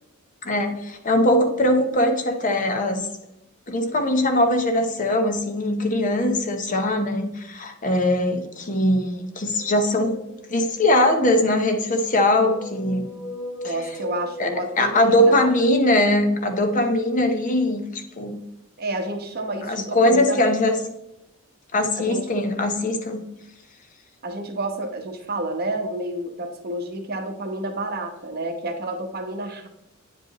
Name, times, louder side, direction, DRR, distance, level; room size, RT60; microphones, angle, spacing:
voice 1, 0.4-3.1 3.7-10.2 10.5-13.1 14.4-18.4 19.6-20.8 21.7-23.2, left 1 dB, 40° left, 6 dB, 0.9 m, -21 dB
sound 1, 9.3-10.9 11.8-15.7, left 1 dB, 85° left, 1.6 m, -39 dB
voice 2, 13.6-15.5 18.8-20.4 22.0-22.3 24.2-29.7, right 1 dB, 50° right, 4 dB, 1.0 m, -30 dB
9.0 x 5.1 x 3.0 m, 0.85 s
head